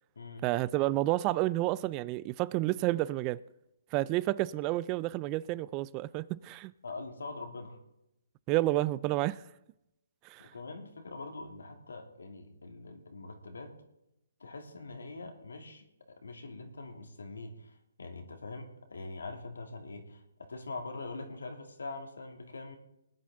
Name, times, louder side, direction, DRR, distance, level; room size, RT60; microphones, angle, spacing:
voice 1, 0.4-3.4 3.9-6.7 8.5-9.4 10.3-10.5, right 17 dB, 25° right, 0.4 m, -30 dB
voice 2, 6.8-7.8 10.4-13.7 14.4-15.8 16.2-22.8, left 3 dB, 85° left, 2.9 m, -43 dB
20.0 x 10.5 x 3.8 m
hypercardioid pair, 150°, 0 cm